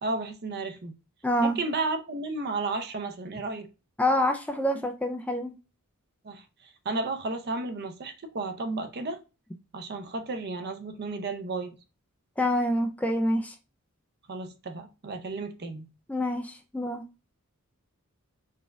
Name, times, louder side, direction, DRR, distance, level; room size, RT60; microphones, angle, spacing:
voice 1, 0.0-1.0 1.4-3.7 6.2-9.2 9.7-11.8 14.3-15.9, right 3 dB, 50° right, 0.6 m, -33 dB
voice 2, 1.2-1.6 4.0-5.5 12.4-13.5 16.1-17.0, left 1 dB, 5° left, 0.3 m, -26 dB
4.1 x 3.4 x 2.3 m
head